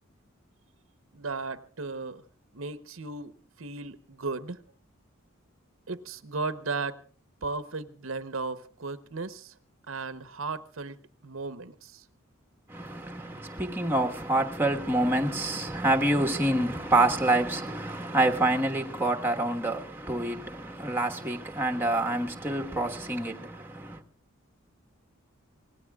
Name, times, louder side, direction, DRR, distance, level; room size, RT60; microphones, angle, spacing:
voice 1, 1.1-2.2 2.5-4.6 5.9-7.0 7.4-9.5 9.9-12.0, right 3 dB, 75° right, 0.9 m, -36 dB
voice 2, 12.7-24.0, right 2 dB, 10° right, 1.4 m, -27 dB
26.0 x 19.0 x 2.4 m
head